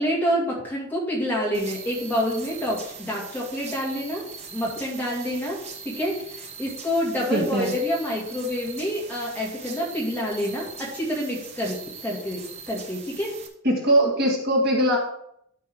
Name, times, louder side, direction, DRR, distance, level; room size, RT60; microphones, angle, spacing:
voice 1, 0.0-4.2 4.5-5.6 5.8-13.3, equal, 10° left, -5 dB, 2.2 m, -27 dB
sound 1, 1.5-13.5, right 5 dB, 30° right, 1.1 m, -41 dB
voice 2, 7.3-7.7 13.6-15.0, right 1 dB, 45° right, -2 dB, 1.7 m, -21 dB
12.5 x 5.2 x 3.6 m, 0.73 s
head